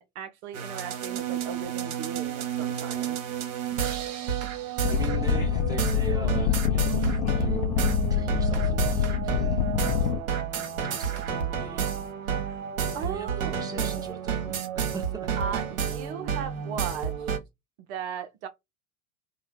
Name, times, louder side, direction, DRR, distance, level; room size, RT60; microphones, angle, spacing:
voice 1, 0.0-3.2 12.5-12.6 12.9-13.6 15.4-17.3 17.9-18.5, right 7 dB, 50° right, 0.5 m, -37 dB
sound 1, 0.5-17.4, right 8 dB, 65° right, 0.9 m, -30 dB
sound 2, 4.8-10.2, left 9 dB, 55° left, 0.6 m, -26 dB
voice 2, 4.9-12.5 12.8-15.4, right 3 dB, 10° right, 0.7 m, -42 dB
2.7 x 2.1 x 3.2 m
figure-of-eight pair, 85°, 45 cm